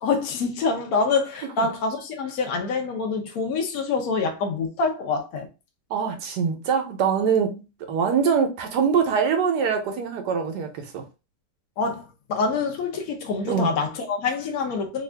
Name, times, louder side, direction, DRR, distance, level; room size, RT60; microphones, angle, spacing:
voice 1, 0.0-5.5 11.8-15.0, left 4 dB, 65° left, 1.2 m, -26 dB
voice 2, 5.9-7.6 7.9-11.0 13.5-13.7, right 6 dB, 80° right, 1.3 m, -23 dB
3.4 x 2.4 x 3.3 m
omnidirectional pair, 1.8 m